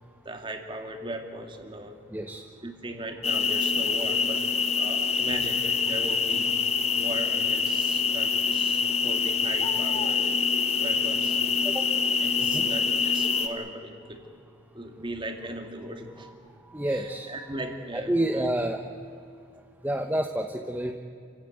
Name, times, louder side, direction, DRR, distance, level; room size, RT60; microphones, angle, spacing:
voice 1, 0.2-2.0 2.6-4.4 4.8-6.5 6.9-10.3 10.8-11.4 12.2-14.2 14.7-16.3 16.9-18.4, right 1 dB, 25° right, 5 dB, 2.3 m, -38 dB
voice 2, 2.1-2.4 11.6-11.8 12.4-12.6 16.7-17.3 17.9-18.8 19.8-20.9, right 1 dB, 10° right, 4 dB, 1.0 m, -28 dB
sound 1, 3.2-13.5, left 5 dB, 35° left, 1.4 m, -25 dB
28.5 x 16.0 x 9.1 m, 2.5 s
head